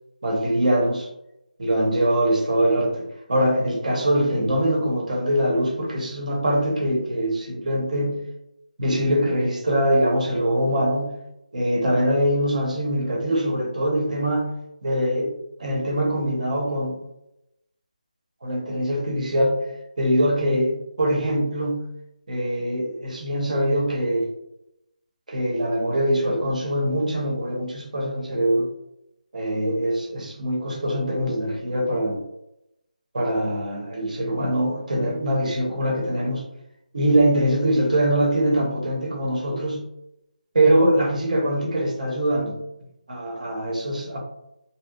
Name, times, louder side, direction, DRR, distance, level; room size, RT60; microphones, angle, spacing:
voice 1, 0.2-1.1 1.6-8.2 8.8-11.1 11.5-14.5 14.8-15.3 15.6-17.0 18.4-19.6 20.0-21.9 22.3-24.3 25.3-28.7 29.3-32.2 33.1-36.4 36.9-39.8 40.5-42.6 43.1-44.2, right 1 dB, 60° right, -1 dB, 0.8 m, -23 dB
2.8 x 2.0 x 2.3 m, 0.86 s
figure-of-eight pair, 165°, 5 cm